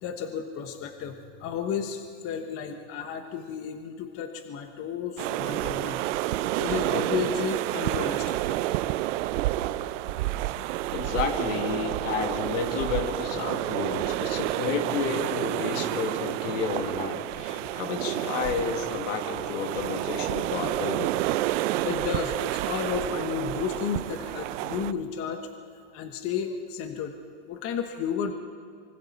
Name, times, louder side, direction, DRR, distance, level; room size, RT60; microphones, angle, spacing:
voice 1, 0.0-6.0 6.3-8.6 17.5-17.7 21.8-25.5 25.9-27.2 27.5-28.3, left 7 dB, 35° left, 6 dB, 1.2 m, -33 dB
sound 1, 5.2-24.9, right 15 dB, 70° right, 0.8 m, -29 dB
voice 2, 10.9-21.2, left 6 dB, 75° left, 4 dB, 2.6 m, -31 dB
25.5 x 24.5 x 4.3 m, 2.3 s
supercardioid pair, 140°, 38 cm